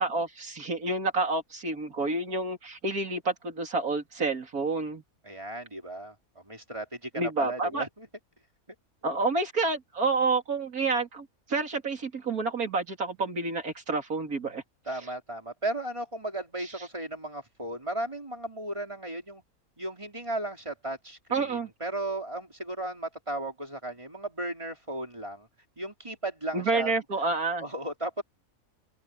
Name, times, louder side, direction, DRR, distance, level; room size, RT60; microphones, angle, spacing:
voice 1, 0.0-5.0 7.1-7.9 9.0-14.6 21.3-21.7 26.5-27.6, right 3 dB, 80° right, 3.4 m, -29 dB
voice 2, 5.2-8.1 14.9-19.4 19.8-25.5 25.8-26.9 27.6-28.2, right 1 dB, 20° right, 3.6 m, -35 dB
omnidirectional pair, 1.5 m